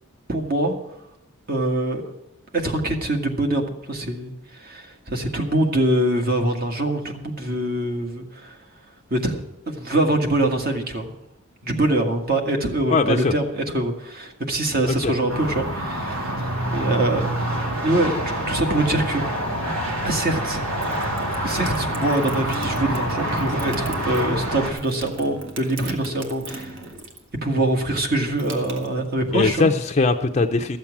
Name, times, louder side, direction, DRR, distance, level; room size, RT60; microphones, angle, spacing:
voice 1, 0.3-0.7 1.5-2.1 2.5-8.6 9.1-9.4 9.7-11.1 11.6-17.3 17.7-19.2 20.0-20.6 21.4-26.8 27.4-29.7, right 1 dB, 45° right, 3 dB, 1.8 m, -24 dB
voice 2, 12.9-13.3 14.9-15.1 29.3-30.8, left 3 dB, 35° left, 6 dB, 0.5 m, -20 dB
sound 1, 15.3-24.7, right 1 dB, 85° right, 2.9 m, -26 dB
sound 2, 20.8-27.3 27.6-29.5, right 2 dB, 60° right, 1.6 m, -38 dB
13.0 x 7.3 x 8.5 m, 0.86 s
head